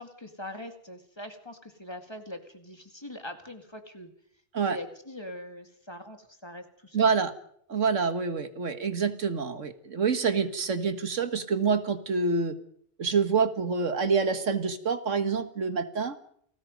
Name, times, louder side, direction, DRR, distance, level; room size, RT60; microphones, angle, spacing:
voice 1, 0.0-4.1 4.7-7.1, left 1 dB, 20° left, 6 dB, 2.2 m, -42 dB
voice 2, 6.9-7.3 7.7-12.5 13.0-16.1, right 5 dB, 85° right, 9 dB, 2.0 m, -27 dB
28.5 x 19.5 x 5.3 m, 0.67 s
omnidirectional pair, 1.3 m